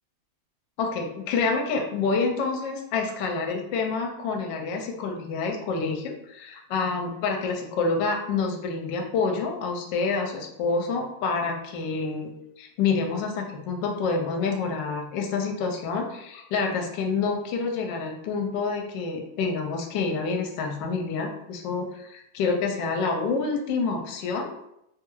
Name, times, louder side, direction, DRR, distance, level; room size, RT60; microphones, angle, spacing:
voice 1, 0.8-12.3 12.6-24.5, left 4 dB, 75° left, 2 dB, 1.2 m, -28 dB
3.2 x 2.3 x 3.0 m, 0.80 s
omnidirectional pair, 2.1 m